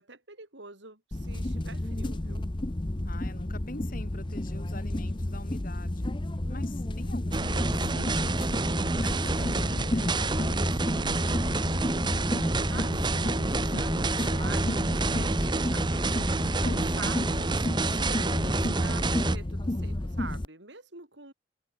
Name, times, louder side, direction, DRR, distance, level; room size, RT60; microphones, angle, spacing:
voice 1, 0.0-2.5 12.7-21.3, right 3 dB, 70° right, 5.1 m, -46 dB
sound 1, 1.1-20.5, left 1 dB, 25° left, 0.8 m, -31 dB
voice 2, 3.0-6.1 6.5-8.4 9.0-11.8, left 2 dB, 50° left, 5.8 m, -46 dB
sound 2, 7.3-19.4, right 2 dB, 25° right, 0.9 m, -28 dB
sound 3, 14.2-17.0 17.3-17.4, equal, 40° right, 7.5 m, -39 dB
head